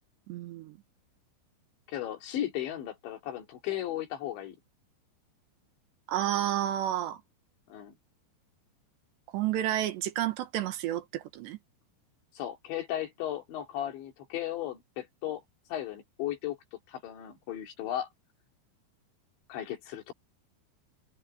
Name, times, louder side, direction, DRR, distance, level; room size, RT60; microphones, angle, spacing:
voice 1, 0.3-0.8 6.1-7.2 9.3-11.6, right 12 dB, 75° right, 3.3 m, -31 dB
voice 2, 1.9-4.6 7.7-7.9 12.3-15.4 15.7-16.6 16.9-18.1 19.5-20.1, left 12 dB, 75° left, 5.0 m, -35 dB
omnidirectional pair, 5.3 m